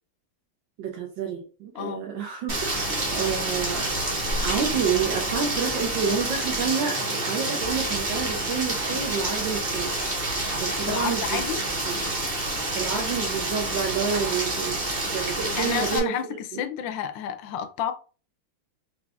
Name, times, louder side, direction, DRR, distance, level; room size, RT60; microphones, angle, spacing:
voice 1, 0.8-3.9 4.4-9.9 10.6-11.4 11.9-12.1 12.7-14.8 15.1-16.1 16.5-16.6, right 6 dB, 80° right, 1.5 m, -29 dB
voice 2, 1.7-2.1 10.8-11.6 15.2-17.9, left 9 dB, 75° left, 1.3 m, -31 dB
Rain, 2.5-16.0, right 2 dB, 30° right, 1.0 m, -28 dB
4.7 x 2.5 x 3.4 m
omnidirectional pair, 2.1 m